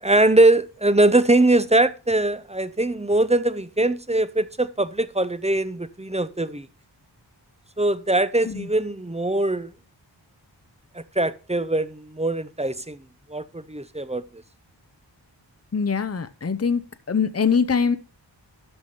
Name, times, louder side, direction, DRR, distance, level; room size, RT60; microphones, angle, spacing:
voice 1, 0.0-6.7 7.8-9.7 10.9-13.0 13.3-14.2, right 2 dB, 15° right, 0.7 m, -21 dB
voice 2, 15.7-16.8 17.1-18.0, left 6 dB, 35° left, 0.8 m, -22 dB
12.5 x 4.9 x 5.5 m
wide cardioid pair, 55°, 43 cm